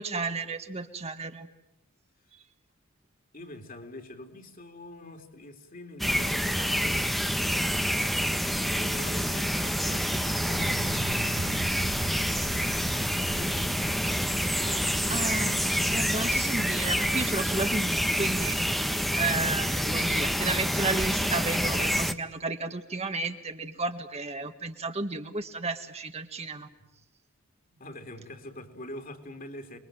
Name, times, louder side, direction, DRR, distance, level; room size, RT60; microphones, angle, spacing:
voice 1, 0.0-1.5 15.1-15.6 15.9-18.5 19.1-26.7, right 3 dB, 30° right, 7 dB, 1.5 m, -32 dB
voice 2, 3.3-15.3 15.6-16.3 26.8-26.9 27.8-29.8, left 1 dB, 40° left, 6 dB, 3.2 m, -45 dB
sound 1, 6.0-22.1, equal, ahead, 1.0 m, -27 dB
sound 2, 9.4-20.9, right 3 dB, 55° right, 1.0 m, -41 dB
29.0 x 22.0 x 9.1 m, 0.84 s
head